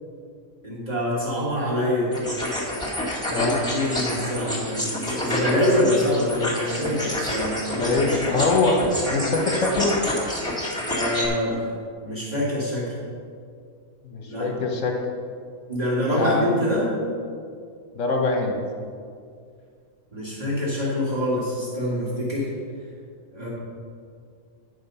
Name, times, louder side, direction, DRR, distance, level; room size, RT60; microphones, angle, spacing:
voice 1, 0.6-2.1 3.3-7.9 10.9-11.7 12.0-13.0 14.3-14.5 15.7-16.9 20.1-22.5 23.3-23.5, left 1 dB, 30° right, -9 dB, 2.1 m, -25 dB
sound 1, 2.1-11.3, left 1 dB, 5° left, 1.7 m, -28 dB
voice 2, 7.8-8.8 9.1-9.9 14.0-14.9 16.1-16.7 17.9-18.5, left 3 dB, 60° left, 2 dB, 1.4 m, -23 dB
9.6 x 5.7 x 5.5 m, 2.2 s
omnidirectional pair, 1.5 m